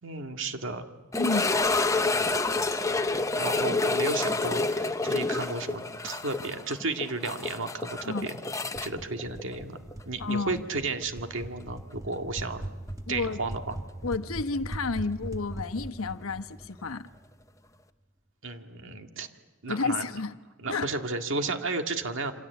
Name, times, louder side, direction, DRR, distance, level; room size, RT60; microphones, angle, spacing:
voice 1, 0.0-0.8 2.1-3.1 3.3-8.4 8.8-9.8 10.1-12.6 13.1-13.8 18.4-19.3 19.6-20.0 20.6-22.3, right 3 dB, 65° right, 2.0 m, -33 dB
sound 1, 1.1-10.0 10.3-10.4 11.0-11.1 13.7-13.8, left 3 dB, 15° left, 0.9 m, -28 dB
voice 2, 1.2-1.8 8.0-8.3 10.2-10.6 13.1-13.4 14.0-17.1 19.7-20.4 20.7-20.9, left 3 dB, 80° left, 1.1 m, -31 dB
sound 2, 8.8-17.4, right 1 dB, 15° right, 1.4 m, -40 dB
27.5 x 26.0 x 8.4 m
head